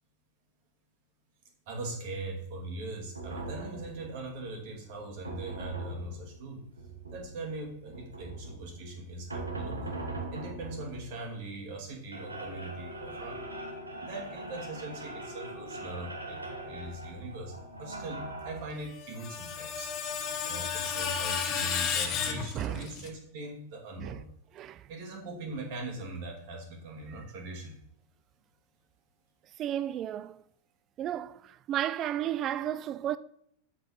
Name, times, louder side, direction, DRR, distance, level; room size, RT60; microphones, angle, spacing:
voice 1, 1.7-6.7 7.1-10.0 10.3-13.4 14.0-19.9 20.4-24.3 24.9-27.8, right 2 dB, 50° right, 2.5 m, -41 dB
sound 1, 3.1-18.6, right 2 dB, 80° right, 1.6 m, -41 dB
Screech, 18.8-23.1, left 7 dB, 35° left, 1.2 m, -33 dB
voice 2, 22.5-22.9 24.0-24.2 24.6-24.8 29.6-30.4 31.0-33.2, right 11 dB, 30° right, 0.4 m, -33 dB
7.7 x 7.1 x 5.6 m
figure-of-eight pair, 90°, 0 cm